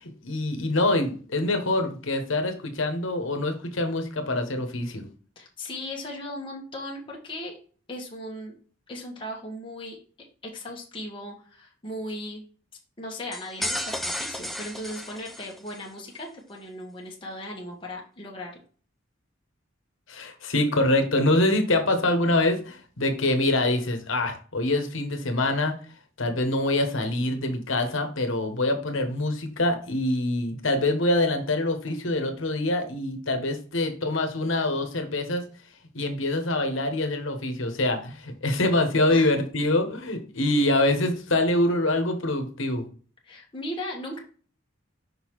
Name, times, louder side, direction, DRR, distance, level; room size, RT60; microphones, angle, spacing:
voice 1, 0.0-5.0 20.1-25.7 26.2-35.4 35.9-42.8, left 2 dB, 75° left, 6 dB, 1.3 m, -25 dB
voice 2, 5.3-7.6 7.9-8.5 8.9-10.0 10.4-12.4 13.0-18.5 39.1-39.3 43.2-44.2, left 1 dB, 25° left, -2 dB, 1.3 m, -37 dB
sound 1, 13.3-15.9, equal, ahead, 0.5 m, -33 dB
5.6 x 3.8 x 4.7 m, 0.40 s
head